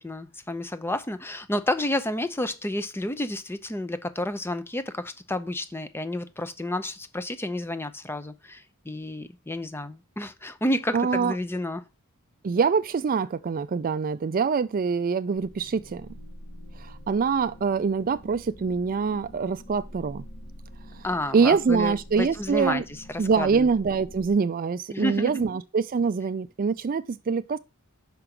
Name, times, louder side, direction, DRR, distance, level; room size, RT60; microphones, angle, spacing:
voice 1, 0.0-11.8 21.0-23.7 24.9-25.5, left 1 dB, 10° left, 0.6 m, -30 dB
voice 2, 10.9-11.3 12.4-16.1 16.9-20.2 21.3-22.8 23.2-27.6, right 5 dB, 40° right, 0.4 m, -24 dB
sound 1, 15.3-24.3, equal, 55° left, 1.7 m, -46 dB
5.9 x 5.1 x 5.9 m
head